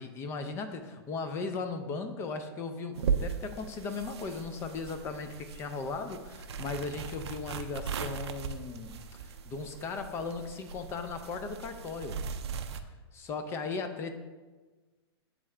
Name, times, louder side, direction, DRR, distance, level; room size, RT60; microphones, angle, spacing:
voice 1, 0.0-12.2 13.1-14.1, left 4 dB, 20° left, 8 dB, 0.4 m, -37 dB
sound 1, 2.9-12.8, right 6 dB, 75° right, 0.5 m, -38 dB
8.0 x 3.6 x 3.2 m, 1.3 s
hypercardioid pair, 145°, 14 cm